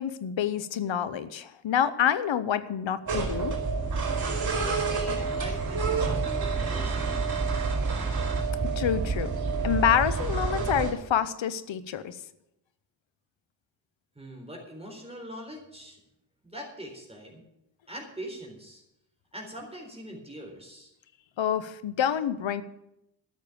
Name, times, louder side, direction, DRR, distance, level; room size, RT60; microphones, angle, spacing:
voice 1, 0.0-3.6 8.6-9.3 9.6-12.2 21.4-22.6, left 9 dB, 90° left, 15 dB, 0.8 m, -27 dB
sound 1, 3.1-10.9, right 4 dB, 60° right, 4.4 m, -28 dB
voice 2, 4.4-7.7 14.2-16.0 16.4-17.4 17.9-18.8 19.3-20.9, equal, 15° right, 0 dB, 4.0 m, -43 dB
12.0 x 6.6 x 9.1 m, 0.84 s
cardioid pair, 50°, 44 cm